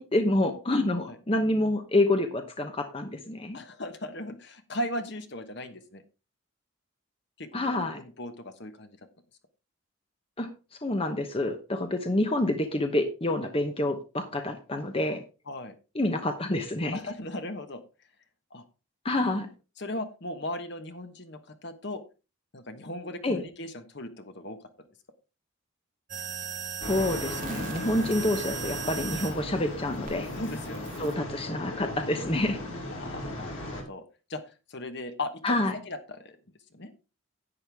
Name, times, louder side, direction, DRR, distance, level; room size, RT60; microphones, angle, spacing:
voice 1, 0.0-3.6 7.5-8.0 10.4-10.5 10.8-15.2 15.9-17.0 19.0-19.5 23.2-23.4 26.9-30.3 31.0-32.6 35.4-35.7, left 1 dB, 25° left, 6 dB, 1.0 m, -27 dB
voice 2, 3.5-6.0 7.4-9.0 15.5-15.7 16.9-17.8 18.5-18.6 19.8-22.0 22.5-24.6 30.3-30.9 32.9-34.0 34.3-34.4 34.7-36.4 36.7-36.9, left 1 dB, 55° left, 8 dB, 1.2 m, -37 dB
sound 1, 26.1-29.4 30.0-31.1, right 7 dB, 40° right, 1.5 m, -37 dB
sound 2, 26.8-33.8, left 1 dB, 75° left, 5.9 m, -37 dB
11.0 x 8.7 x 3.5 m, 0.30 s
head